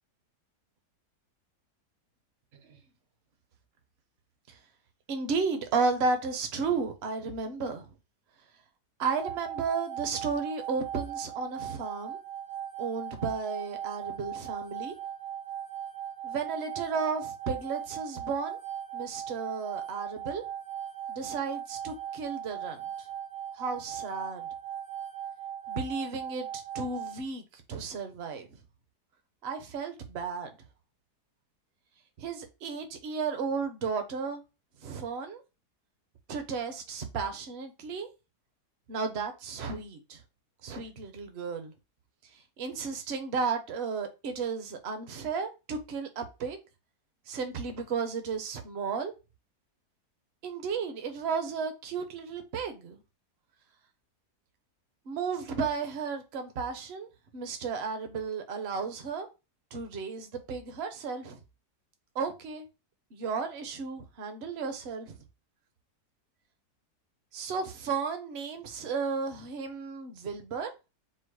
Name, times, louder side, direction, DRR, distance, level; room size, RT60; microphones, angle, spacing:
voice 1, 5.1-7.9 9.0-12.2 12.8-14.9 16.2-18.6 18.9-20.4 21.1-22.9 23.5-24.5 25.7-28.5 29.4-30.5 32.2-34.4 34.8-35.4 36.3-38.1 38.9-40.2 40.6-41.7 42.6-46.6 47.3-49.1 50.4-53.0 55.1-57.1 57.3-59.3 59.7-61.4 62.1-62.7 63.1-65.2 67.3-70.7, right 5 dB, 50° right, 0.9 m, -33 dB
sound 1, 9.2-27.2, right 10 dB, 75° right, 2.1 m, -39 dB
4.5 x 2.0 x 4.6 m
omnidirectional pair, 1.7 m